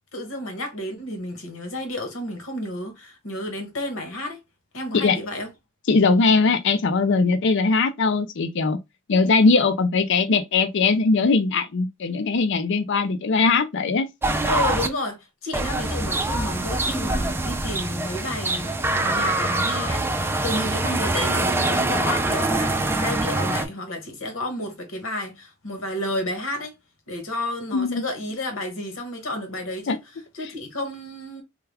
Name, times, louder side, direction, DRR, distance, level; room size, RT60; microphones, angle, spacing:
voice 1, 0.1-4.4 4.7-5.5 14.4-26.7 27.1-31.4, left 1 dB, 80° left, 1.3 m, -31 dB
voice 2, 5.9-8.8 9.1-14.1 27.7-28.0 29.9-30.0, left 4 dB, 60° left, 0.5 m, -20 dB
sound 1, 14.2-14.9 15.5-23.7, right 2 dB, 10° right, 0.4 m, -24 dB
3.4 x 2.3 x 3.4 m
head